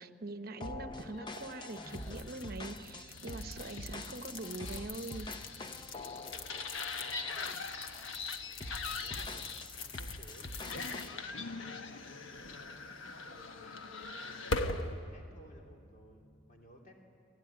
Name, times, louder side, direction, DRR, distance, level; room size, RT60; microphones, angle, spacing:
voice 1, 0.0-5.3, right 2 dB, 50° right, 9 dB, 1.0 m, -43 dB
sound 1, 0.6-7.6 7.9-8.2 8.6-11.2, left 1 dB, 25° left, 0.7 m, -46 dB
sound 2, 1.3-14.9, left 3 dB, 75° left, 1.3 m, -41 dB
sound 3, 1.8-16.2, right 1 dB, 5° right, 4.9 m, -63 dB
voice 2, 6.9-8.2 8.6-13.8 14.2-16.9, equal, 40° left, 0 dB, 3.1 m, -57 dB
25.5 x 17.0 x 9.6 m, 2.3 s
head